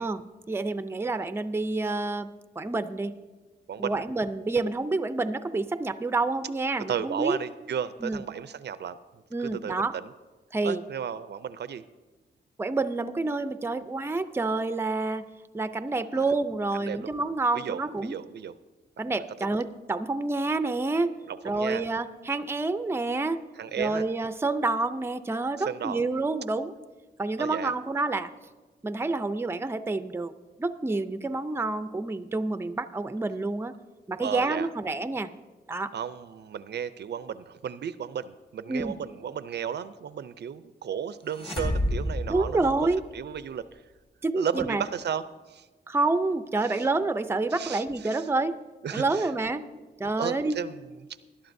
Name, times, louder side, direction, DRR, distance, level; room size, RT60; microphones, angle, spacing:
voice 1, 0.0-2.3 2.6-3.1 3.8-7.4 8.0-8.2 9.3-9.9 10.5-10.8 12.6-15.2 15.5-18.1 19.0-21.1 21.4-23.4 23.8-26.7 27.2-28.3 28.8-30.3 30.6-33.7 34.1-35.3 35.7-35.9 38.7-39.0 42.3-43.0 44.2-44.8 45.9-48.5 48.9-49.7 50.0-50.6, right 3 dB, 15° right, 11 dB, 0.4 m, -28 dB
voice 2, 3.7-4.0 6.9-9.0 9.4-10.1 10.6-11.8 16.1-16.3 16.8-17.1 17.5-18.5 21.3-21.8 23.6-24.0 25.6-26.0 27.4-27.7 34.2-34.7 35.9-42.9 43.1-43.8 44.3-45.7 46.6-46.8 47.5-48.2 48.8-49.3 50.2-50.8, right 8 dB, 70° right, 14 dB, 0.5 m, -34 dB
sound 1, 41.3-43.3, left 1 dB, 30° left, 1.9 m, -30 dB
20.0 x 11.5 x 2.6 m, 1.3 s
wide cardioid pair, 120°, 18 cm